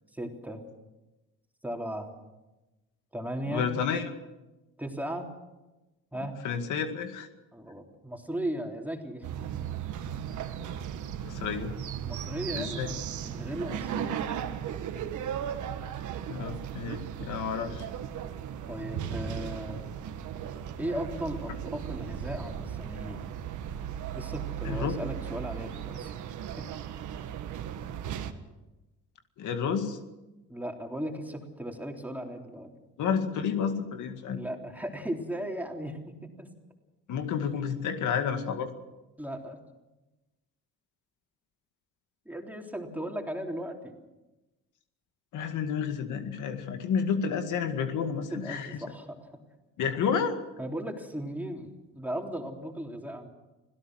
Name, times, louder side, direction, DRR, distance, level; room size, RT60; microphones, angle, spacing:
voice 1, 0.1-0.6 1.6-2.1 3.1-3.8 4.8-5.3 6.1-6.4 7.5-9.3 12.0-14.3 17.5-17.8 18.7-19.9 20.8-23.3 24.1-26.1 26.5-26.7 27.2-27.3 30.5-32.7 34.3-36.5 37.6-37.7 39.2-39.6 42.3-43.9 48.1-49.4 50.6-53.3, right 1 dB, 5° right, 2 dB, 3.6 m, -37 dB
voice 2, 3.5-4.1 6.4-7.3 11.2-11.7 12.5-12.9 16.3-17.9 24.6-24.9 29.4-30.0 33.0-34.4 37.1-38.7 45.3-48.8 49.8-50.4, left 7 dB, 80° left, 6 dB, 2.1 m, -30 dB
sound 1, 9.2-28.3, right 9 dB, 75° right, 1.6 m, -36 dB
26.5 x 17.0 x 6.4 m, 1.1 s
cardioid pair, 90°, 30 cm